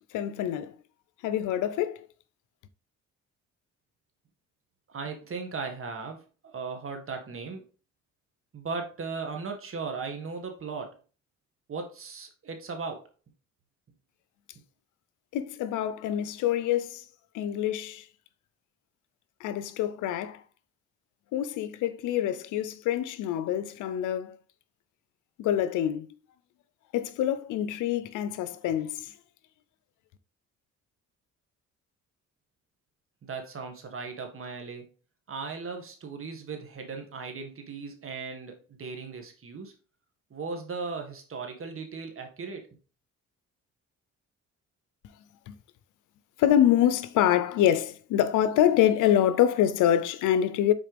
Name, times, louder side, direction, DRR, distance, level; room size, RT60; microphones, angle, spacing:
voice 1, 0.1-0.7 1.2-2.1 15.3-17.0 17.3-18.1 19.4-20.4 21.3-24.4 25.4-26.1 26.9-29.1 45.5-45.6 46.4-50.7, left 11 dB, 90° left, 0.7 m, -25 dB
voice 2, 4.9-6.2 6.5-7.6 8.5-11.0 11.7-13.1 33.2-34.9 35.3-39.7 40.3-42.7, right 4 dB, 45° right, 1.7 m, -37 dB
6.2 x 4.4 x 3.4 m
cardioid pair, 90°, 30 cm